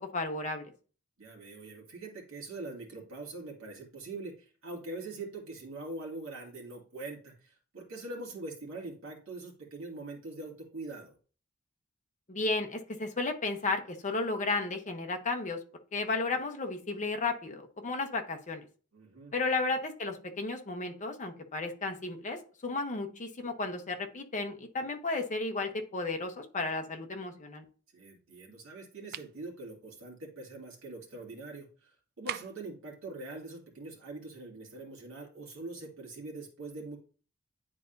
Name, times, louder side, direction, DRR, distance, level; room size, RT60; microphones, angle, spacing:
voice 1, 0.1-0.7 12.3-15.6 15.9-18.7 19.3-27.6, left 3 dB, 35° left, 5 dB, 0.9 m, -33 dB
voice 2, 1.2-11.1 18.9-19.4 27.9-37.0, right 2 dB, 65° right, -2 dB, 2.2 m, -43 dB
sound 1, 29.1-29.4 32.3-32.7, right 11 dB, 45° right, 0.3 m, -39 dB
10.0 x 4.0 x 2.6 m, 0.39 s
head